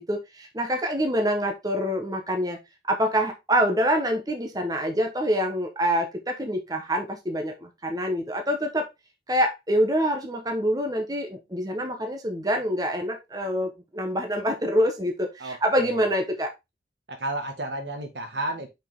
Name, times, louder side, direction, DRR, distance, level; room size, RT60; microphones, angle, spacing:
voice 1, 0.0-2.6 2.9-8.9 9.3-16.5, equal, 20° right, 1.1 m, -26 dB
voice 2, 15.4-16.1 17.1-18.7, right 1 dB, 75° right, 1.8 m, -32 dB
5.9 x 5.0 x 3.6 m
head